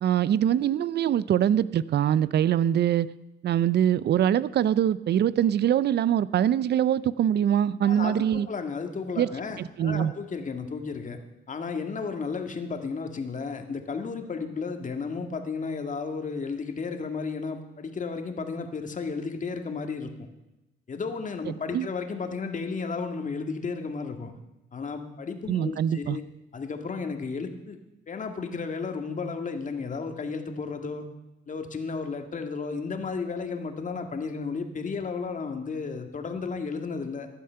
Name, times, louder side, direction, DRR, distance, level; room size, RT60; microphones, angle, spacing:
voice 1, 0.0-3.1 3.4-8.5 9.2-9.3 9.6-10.1 21.7-21.9 25.5-26.2, right 10 dB, 55° right, 19 dB, 0.6 m, -23 dB
voice 2, 7.8-11.2 11.5-20.3 20.9-24.3 24.7-26.2 26.5-27.8 28.1-31.1 31.5-37.3, left 4 dB, 40° left, 5 dB, 1.9 m, -33 dB
15.5 x 11.0 x 5.7 m, 0.97 s
cardioid pair, 90°, 20 cm